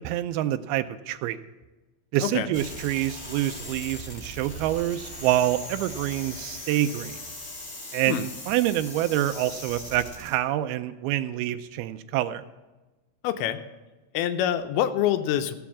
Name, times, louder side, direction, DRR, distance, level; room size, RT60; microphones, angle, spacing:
voice 1, 0.0-1.4 2.1-7.2 7.9-12.4, right 13 dB, 85° right, 10 dB, 2.4 m, -27 dB
sound 1, 2.5-10.4, left 1 dB, 35° left, 0.9 m, -39 dB
voice 2, 13.2-13.6 14.1-15.6, left 11 dB, 85° left, 9 dB, 2.6 m, -25 dB
14.5 x 7.1 x 7.2 m, 1.1 s
omnidirectional pair, 4.4 m